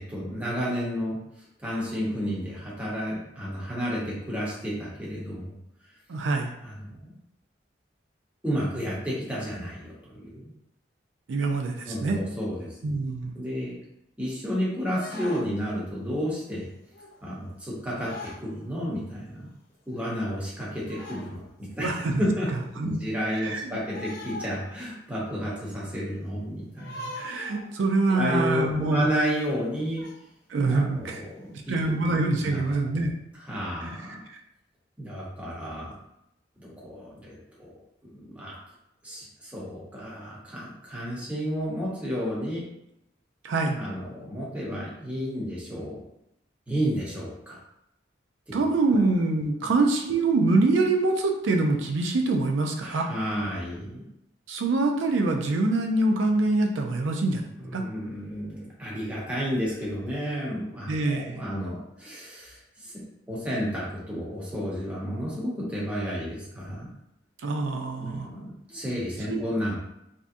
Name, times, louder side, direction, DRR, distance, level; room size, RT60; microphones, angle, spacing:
voice 1, 0.0-5.5 6.6-7.1 8.4-10.5 11.9-12.8 13.3-13.8 14.2-16.7 17.2-18.1 18.4-19.5 19.9-22.5 22.8-27.1 28.1-30.0 30.7-31.7 32.4-32.6 33.3-34.2 35.0-35.9 36.6-37.7 38.1-38.5 39.0-42.6 43.8-46.0 46.7-47.6 48.5-48.7 49.6-49.7 52.8-54.0 57.6-62.9 63.3-66.9 68.0-69.8, equal, 5° right, -7 dB, 0.8 m, -31 dB
voice 2, 6.1-6.5 11.3-12.2 12.8-13.4 21.8-22.2 22.8-23.0 23.3-23.7 27.2-29.1 30.5-31.2 31.5-33.1 33.8-34.0 43.4-43.8 48.5-53.1 54.5-57.4 57.7-57.8 60.9-61.4 67.4-68.3 69.3-69.4, right 2 dB, 85° right, 2 dB, 0.4 m, -25 dB
sound 1, 14.9-15.8 16.2-16.5 16.9-17.3 17.9-18.5 19.1-19.2 19.4-19.5 19.9-20.2 20.8-21.4 22.1-22.2 23.9-24.9 25.2-25.3 26.8-27.8 28.4-28.5 28.8-29.0 30.0-30.2 31.0-31.2 31.8-31.9 32.5-32.7, left 2 dB, 50° left, 0.7 m, -42 dB
3.4 x 2.7 x 2.5 m, 0.82 s
head